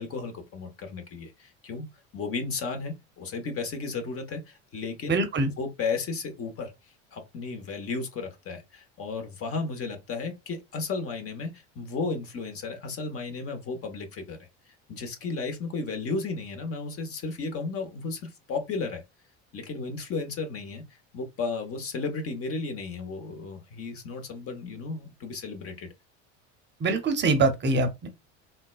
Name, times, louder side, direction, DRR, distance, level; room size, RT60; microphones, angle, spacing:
voice 1, 0.0-1.9 2.1-5.2 5.6-6.7 7.1-14.4 14.9-19.0 19.5-20.8 21.1-25.9, left 4 dB, 40° left, 1.0 m, -34 dB
voice 2, 5.1-5.5 26.8-28.1, right 3 dB, 30° right, 0.7 m, -24 dB
3.8 x 2.2 x 2.3 m
supercardioid pair, 95°, 34 cm